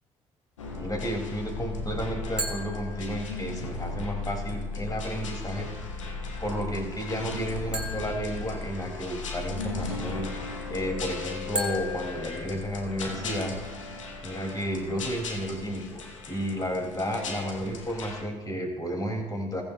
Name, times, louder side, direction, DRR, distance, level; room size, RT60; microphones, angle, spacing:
sound 1, 0.6-18.2, left 3 dB, 80° left, 1.0 m, -36 dB
voice 1, 0.7-5.7 5.9-10.3 10.7-13.5 13.9-19.6, equal, 25° left, 1 dB, 3.7 m, -32 dB
sound 2, 2.4-3.7 7.7-9.3 11.6-13.3, equal, 5° right, 2.8 m, -37 dB
20.5 x 8.1 x 2.7 m, 1.1 s
figure-of-eight pair, 40°, 16 cm